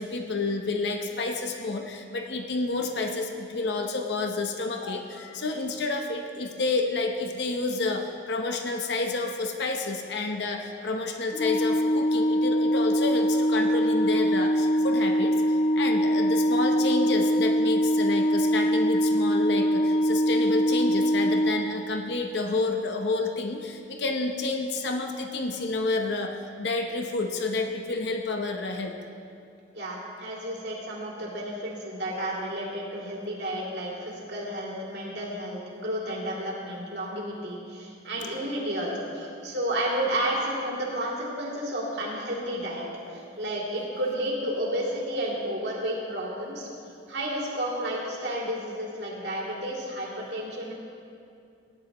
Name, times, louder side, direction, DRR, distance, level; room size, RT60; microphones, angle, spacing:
voice 1, 0.0-28.9, left 3 dB, 65° left, 4 dB, 0.8 m, -29 dB
Organ, 11.3-22.2, equal, 35° left, 0.4 m, -23 dB
voice 2, 29.7-46.7 47.1-50.7, right 1 dB, 65° right, -4 dB, 2.7 m, -31 dB
17.5 x 10.5 x 3.0 m, 2.4 s
head